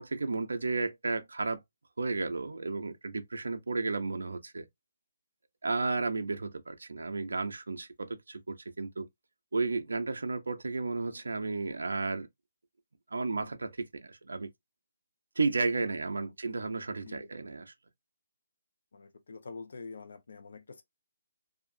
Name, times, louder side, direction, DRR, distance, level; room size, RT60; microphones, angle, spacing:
voice 1, 0.0-1.6 2.0-4.7 5.6-9.1 9.5-12.3 13.1-14.5 15.4-17.7, right 3 dB, 85° right, 0.6 m, -33 dB
voice 2, 18.9-20.8, left 4 dB, 70° left, 0.9 m, -46 dB
2.8 x 2.5 x 2.5 m
hypercardioid pair, 160°, 0 cm